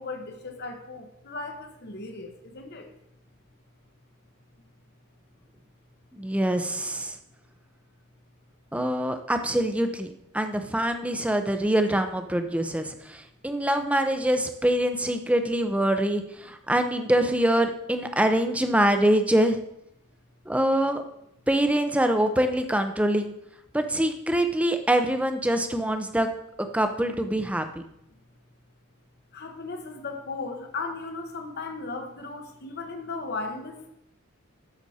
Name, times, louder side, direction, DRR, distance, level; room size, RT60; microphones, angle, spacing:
voice 1, 0.0-2.9 29.3-33.9, left 3 dB, 50° left, 4 dB, 1.0 m, -36 dB
voice 2, 6.1-7.2 8.7-19.6 20.5-21.0 21.5-23.3 23.7-26.3 26.7-27.6, right 1 dB, 5° right, 7 dB, 0.7 m, -24 dB
11.0 x 6.9 x 4.2 m, 0.80 s
head